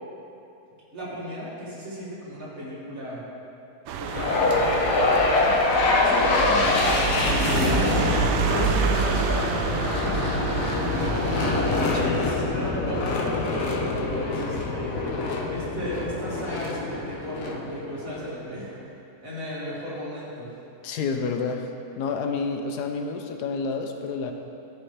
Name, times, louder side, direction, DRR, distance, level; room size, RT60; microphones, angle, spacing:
voice 1, 0.9-3.2 4.0-7.9 8.5-10.9 11.8-15.1 15.5-20.5, equal, 55° right, -8 dB, 2.6 m, -35 dB
sound 1, 3.9-12.1, right 6 dB, 85° right, 1.2 m, -28 dB
sound 2, 4.1-18.3, left 3 dB, 60° left, 1.2 m, -25 dB
voice 2, 20.8-21.7 22.0-24.3, left 4 dB, 80° left, 5 dB, 1.2 m, -29 dB
14.5 x 5.4 x 3.2 m, 2.7 s
omnidirectional pair, 1.8 m